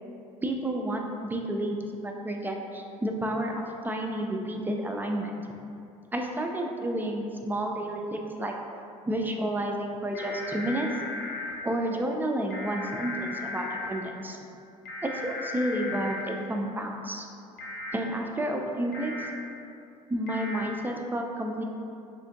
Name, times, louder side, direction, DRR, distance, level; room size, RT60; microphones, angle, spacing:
voice 1, 0.4-5.3 6.1-8.5 9.1-10.9 11.6-14.4 15.0-17.3 17.9-19.3 20.1-21.6, right 1 dB, 10° right, 1 dB, 0.3 m, -31 dB
sound 1, 10.1-11.5 12.5-13.9 14.8-16.2 17.6-17.9 18.9-19.3 20.3-20.6, left 2 dB, 55° left, 0.5 m, -36 dB
3.6 x 2.4 x 2.6 m, 2.6 s
hypercardioid pair, 65°, 18 cm